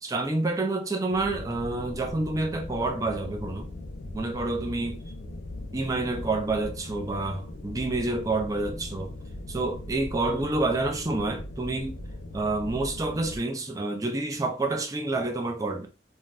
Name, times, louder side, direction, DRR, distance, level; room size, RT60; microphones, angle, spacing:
voice 1, 0.0-3.7 4.1-5.0 5.7-9.1 9.5-12.0 12.3-15.9, right 2 dB, 20° right, 0.4 m, -28 dB
sound 1, 1.1-13.4, left 1 dB, 70° left, 0.4 m, -39 dB
2.6 x 2.2 x 3.2 m
head